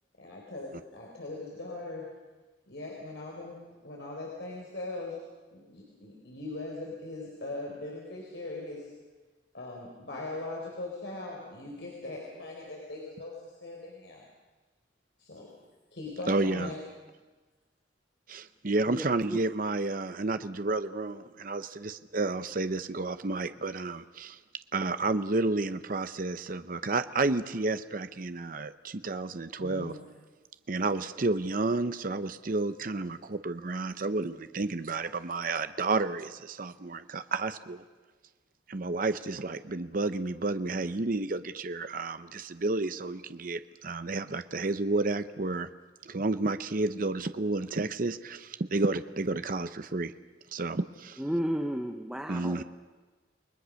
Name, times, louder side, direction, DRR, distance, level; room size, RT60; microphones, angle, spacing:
voice 1, 0.2-2.1 2.7-3.6 3.8-5.2 5.5-8.9 9.5-14.2 15.2-15.5 15.9-16.8 29.6-30.0, left 2 dB, 70° left, -2 dB, 4.3 m, -40 dB
voice 2, 16.3-16.7 18.3-24.4 24.7-29.9 30.7-37.8 38.7-45.7 46.0-50.1 50.5-51.2 52.3-52.6, right 3 dB, 50° right, 11 dB, 0.8 m, -31 dB
voice 3, 18.9-19.4 51.2-52.6, equal, 5° right, 4 dB, 0.9 m, -33 dB
29.5 x 20.5 x 6.4 m, 1.3 s
head